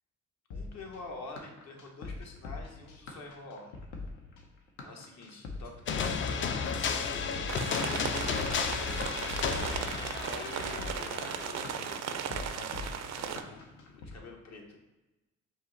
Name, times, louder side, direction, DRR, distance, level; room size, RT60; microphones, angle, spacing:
sound 1, 0.5-14.2, left 3 dB, 90° left, 0.7 m, -43 dB
voice 1, 0.5-3.9 4.8-7.4 8.0-9.7 10.2-13.6 14.0-14.8, left 3 dB, 60° left, 1 dB, 0.9 m, -48 dB
sound 2, 5.9-12.4, left 6 dB, 40° left, 0.4 m, -33 dB
sound 3, 7.5-13.4, right 8 dB, 60° right, 0.4 m, -37 dB
5.4 x 2.1 x 3.8 m, 1.1 s
cardioid pair, 90°, 30 cm